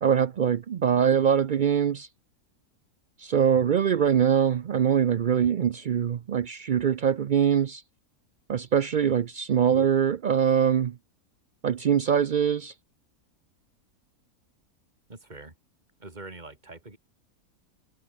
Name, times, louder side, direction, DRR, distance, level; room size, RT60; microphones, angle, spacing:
voice 1, 0.0-2.1 3.2-7.8 8.5-11.0 11.6-12.7, right 8 dB, 85° right, 0.4 m, -23 dB
voice 2, 15.1-15.5 16.0-17.0, right 2 dB, 30° right, 3.5 m, -44 dB
omnidirectional pair, 1.6 m